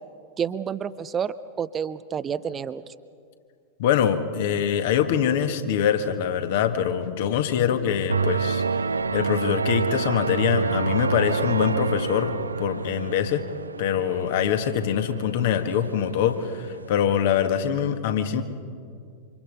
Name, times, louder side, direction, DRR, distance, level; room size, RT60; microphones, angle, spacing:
voice 1, 0.4-2.8, right 7 dB, 25° right, 15 dB, 0.7 m, -29 dB
voice 2, 3.8-8.6 9.1-13.5 13.8-18.4, left 8 dB, 55° left, 7 dB, 1.9 m, -24 dB
sound 1, 8.1-17.3, right 5 dB, 75° right, 0.6 m, -28 dB
28.5 x 26.5 x 5.5 m, 2.3 s
figure-of-eight pair, 90°, 0 cm